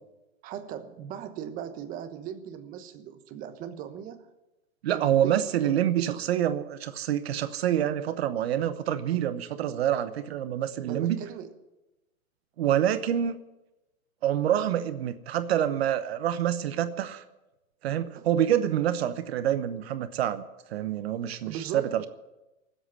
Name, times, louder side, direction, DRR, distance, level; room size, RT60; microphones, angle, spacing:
voice 1, 0.4-4.3 4.9-6.1 10.9-11.5 18.2-18.3 18.7-19.1 21.5-21.9, right 9 dB, 20° right, 9 dB, 1.1 m, -39 dB
voice 2, 4.8-11.2 12.6-13.4 14.2-17.2 17.8-20.4 20.7-22.1, right 10 dB, 50° right, 11 dB, 1.0 m, -27 dB
18.5 x 8.0 x 9.7 m, 1.0 s
hypercardioid pair, 150°, 41 cm